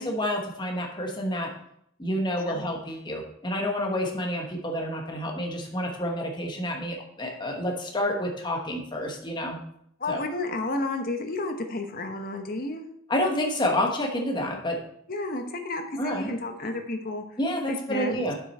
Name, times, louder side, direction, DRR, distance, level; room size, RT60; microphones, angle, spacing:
voice 1, 0.0-1.5 2.0-9.6 10.1-10.2 13.1-14.8 16.0-16.3 17.4-18.3, left 1 dB, 20° left, 1 dB, 1.2 m, -29 dB
voice 2, 10.0-12.8 15.1-17.2 17.7-18.2, left 2 dB, 45° left, 6 dB, 1.0 m, -31 dB
7.5 x 6.3 x 4.3 m, 0.70 s
head